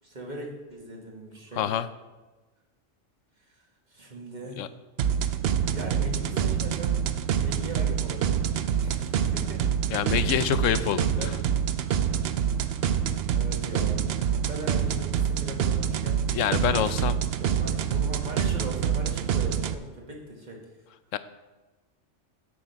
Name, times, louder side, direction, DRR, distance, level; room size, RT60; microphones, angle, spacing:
voice 1, 0.0-1.7 3.4-4.7 5.7-7.1 7.3-8.4 8.8-9.7 10.8-11.4 12.0-12.3 13.3-17.1 17.4-20.6, equal, 35° right, -1 dB, 1.8 m, -40 dB
voice 2, 1.5-1.9 4.6-4.7 9.9-11.1 16.3-17.1 21.1-21.2, left 10 dB, 85° left, 13 dB, 0.9 m, -26 dB
sound 1, 5.0-19.7, right 8 dB, 65° right, 0.7 m, -26 dB
8.7 x 7.5 x 5.6 m, 1.2 s
omnidirectional pair, 1.3 m